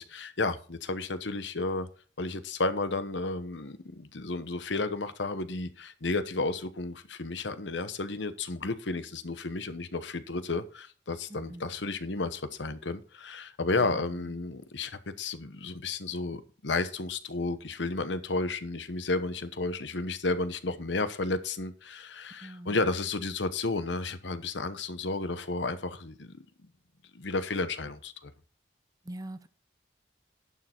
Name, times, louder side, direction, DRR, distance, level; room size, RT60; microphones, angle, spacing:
voice 1, 0.0-1.9 2.2-26.4 27.1-28.3, left 3 dB, 75° left, 1.0 m, -32 dB
voice 2, 22.4-22.8 29.1-29.5, right 1 dB, 20° right, 0.6 m, -42 dB
11.0 x 6.7 x 4.5 m
head